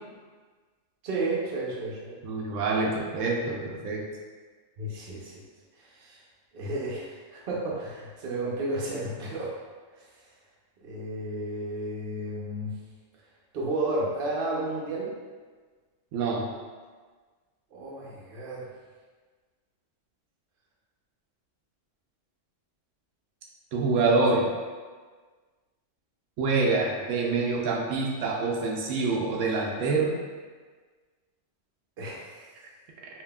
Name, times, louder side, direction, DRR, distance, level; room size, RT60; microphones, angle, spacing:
voice 1, 1.0-2.2 4.8-5.3 5.8-6.2 6.5-9.5 10.8-12.7 13.5-15.1 17.7-18.6 32.0-32.5, right 2 dB, 50° right, -4 dB, 0.9 m, -32 dB
voice 2, 2.2-4.0 16.1-16.4 23.7-24.5 26.4-30.1, right 3 dB, 85° right, -1 dB, 0.9 m, -26 dB
5.3 x 2.7 x 2.3 m, 1.5 s
omnidirectional pair, 1.3 m